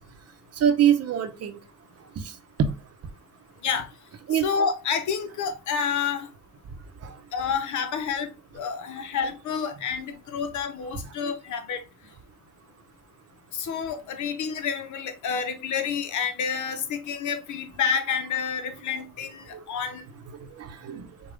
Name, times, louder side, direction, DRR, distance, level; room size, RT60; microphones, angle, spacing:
voice 1, 0.6-1.6 2.6-2.7 4.3-4.5 7.0-7.2 19.5-19.6 20.6-21.1, right 9 dB, 55° right, 0.8 m, -23 dB
voice 2, 4.3-6.3 7.3-11.8 13.5-20.0, left 6 dB, 75° left, 0.9 m, -29 dB
5.3 x 2.4 x 3.2 m
cardioid pair, 90°, 30 cm